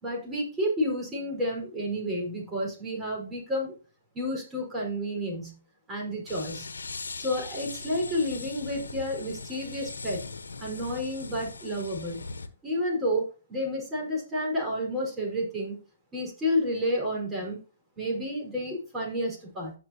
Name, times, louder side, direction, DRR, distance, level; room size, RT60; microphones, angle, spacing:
voice 1, 0.0-3.7 4.1-5.6 5.9-6.7 7.2-10.2 10.6-12.2 12.6-15.8 16.1-17.6 18.0-19.7, equal, 15° right, -2 dB, 5.0 m, -30 dB
sound 1, 6.3-12.5, left 4 dB, 80° left, 1.2 m, -40 dB
15.5 x 6.2 x 2.9 m, 0.37 s
hypercardioid pair, 130°, 0 cm